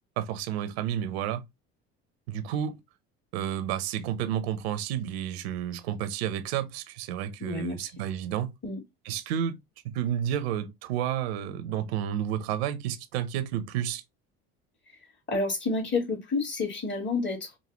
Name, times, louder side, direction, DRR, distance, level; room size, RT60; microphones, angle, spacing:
voice 1, 0.2-1.4 2.3-2.8 3.3-8.5 9.0-9.6 9.8-14.0, right 10 dB, 85° right, 0.8 m, -31 dB
voice 2, 7.4-7.8 8.6-8.8 15.3-17.6, left 3 dB, 35° left, 3.2 m, -29 dB
5.3 x 2.7 x 2.9 m
supercardioid pair, 80°, 31 cm